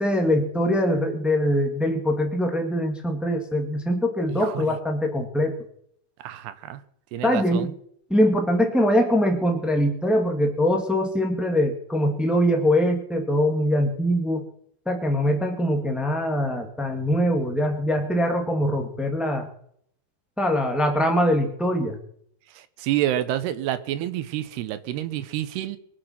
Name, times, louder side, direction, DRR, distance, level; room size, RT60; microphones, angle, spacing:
voice 1, 0.0-5.6 7.2-7.7 8.1-14.5 14.8-19.5 20.4-22.0, equal, ahead, 3 dB, 0.8 m, -23 dB
voice 2, 4.3-4.7 6.2-6.8 7.1-7.7 22.6-25.8, right 12 dB, 85° right, 13 dB, 3.0 m, -28 dB
23.5 x 8.4 x 6.0 m, 0.66 s
omnidirectional pair, 4.6 m